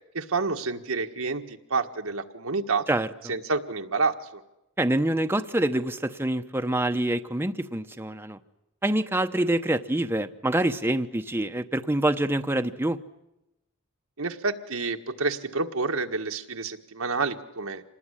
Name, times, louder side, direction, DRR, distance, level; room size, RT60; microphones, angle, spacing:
voice 1, 0.1-2.9 3.3-4.4 14.2-17.8, right 4 dB, 85° right, 5 dB, 1.6 m, -29 dB
voice 2, 4.8-8.4 8.8-13.0, right 1 dB, 10° right, 7 dB, 0.9 m, -26 dB
27.0 x 19.5 x 10.0 m, 0.91 s
head